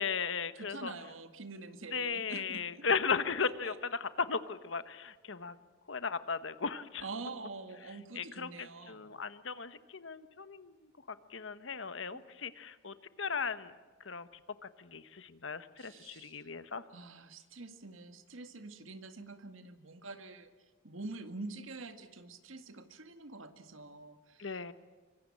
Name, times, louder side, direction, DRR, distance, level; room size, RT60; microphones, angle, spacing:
voice 1, 0.0-0.9 1.9-5.5 5.9-7.0 8.1-8.5 8.9-10.7 11.3-13.7 14.0-14.3 14.8-16.8 24.4-24.7, left 5 dB, 75° left, 12 dB, 1.2 m, -36 dB
voice 2, 0.5-2.9 3.4-3.8 7.0-9.1 12.1-12.2 15.8-16.4 16.9-20.5 20.8-24.7, right 3 dB, 90° right, 9 dB, 1.9 m, -46 dB
25.0 x 24.0 x 8.6 m, 1.4 s
head